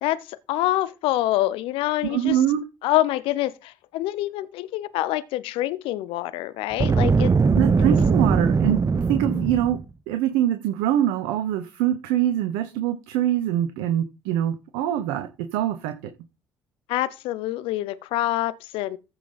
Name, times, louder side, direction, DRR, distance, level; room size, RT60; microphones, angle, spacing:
voice 1, 0.5-2.4 2.8-7.3 16.9-19.0, left 15 dB, 70° left, 0.7 m, -26 dB
voice 2, 2.0-2.6 7.5-9.8 10.1-16.1, right 11 dB, 75° right, 0.9 m, -24 dB
Boom, 6.7-9.8, right 5 dB, 35° right, 1.0 m, -20 dB
14.5 x 5.8 x 4.0 m
hypercardioid pair, 50°, 10 cm